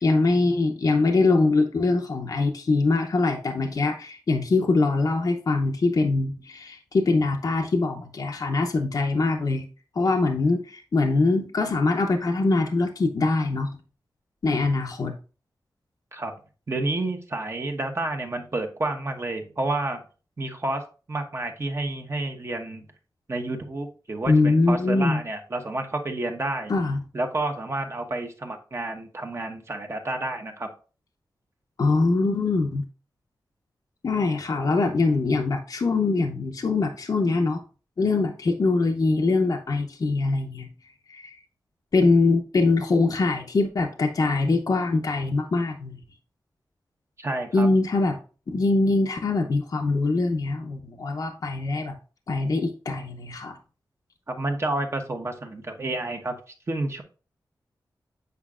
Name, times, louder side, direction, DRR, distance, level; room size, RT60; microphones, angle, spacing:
voice 1, 0.0-9.7 10.0-13.7 14.4-15.2 24.3-25.2 26.7-27.0 31.8-32.8 34.0-37.6 38.0-40.7 41.1-41.4 41.9-46.0 47.5-48.2 48.5-51.9 52.3-53.6, left 3 dB, 55° left, 2 dB, 0.7 m, -23 dB
voice 2, 16.7-20.0 20.4-20.8 21.1-22.8 23.3-26.7 27.1-30.7 47.2-47.7 54.3-56.4 56.7-57.0, right 2 dB, 35° right, 3 dB, 1.1 m, -30 dB
8.1 x 5.0 x 2.4 m, 0.36 s
wide cardioid pair, 110°, 8 cm